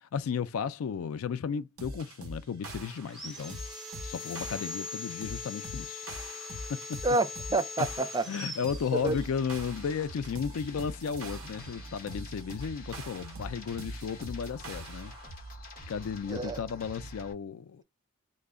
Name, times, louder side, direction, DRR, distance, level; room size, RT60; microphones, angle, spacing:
voice 1, 0.0-3.6 4.0-6.1 6.7-7.0 8.3-15.1 15.9-17.8, left 6 dB, 80° left, 0.3 m, -34 dB
sound 1, 1.8-15.3, equal, 80° right, 0.9 m, -44 dB
Sawing, 3.0-9.5, left 4 dB, ahead, 1.0 m, -41 dB
voice 2, 7.0-8.2 8.9-9.2 16.3-16.6, right 2 dB, 20° right, 0.3 m, -28 dB
sound 2, 9.0-17.3, equal, 40° left, 0.8 m, -46 dB
2.2 x 2.0 x 3.5 m
head